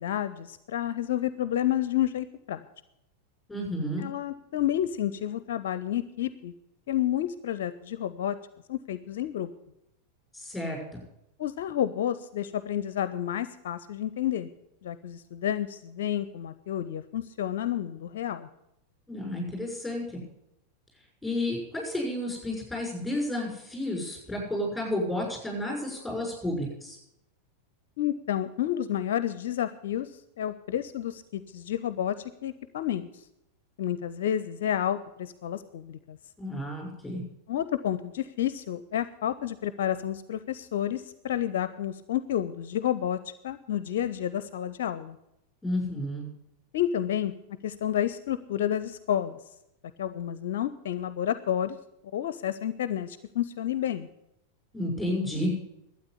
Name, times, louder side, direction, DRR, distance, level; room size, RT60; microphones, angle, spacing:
voice 1, 0.0-2.6 4.0-6.5 6.9-8.4 8.7-9.5 11.4-14.5 14.8-18.5 28.0-30.1 30.4-33.1 33.8-36.2 37.5-43.2 43.4-45.2 46.7-47.3 47.6-49.4 50.0-51.8 52.1-54.1, left 11 dB, 55° left, 14 dB, 0.5 m, -30 dB
voice 2, 3.5-4.1 10.3-11.0 19.1-20.0 21.2-27.0 36.4-37.2 45.6-46.3 54.7-55.5, left 1 dB, ahead, 0 dB, 6.2 m, -31 dB
12.5 x 8.8 x 8.1 m, 0.84 s
figure-of-eight pair, 90°, 0 cm